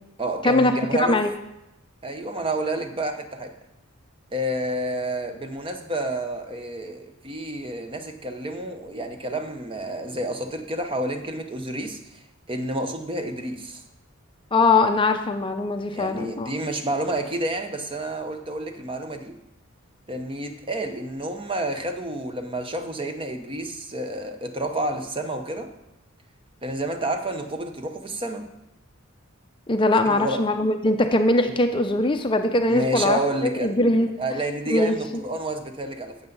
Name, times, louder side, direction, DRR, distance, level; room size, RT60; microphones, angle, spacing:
voice 1, 0.2-1.2 2.0-3.6 4.3-12.0 12.5-13.8 15.9-19.4 20.1-25.7 26.6-28.5 30.0-30.4 31.4-31.5 32.7-33.8 34.2-36.2, right 1 dB, 25° right, 0.8 m, -29 dB
voice 2, 1.0-1.3 14.5-16.5 29.7-33.2 33.6-34.1 34.7-35.0, left 2 dB, 25° left, 0.5 m, -21 dB
11.5 x 7.9 x 3.9 m
head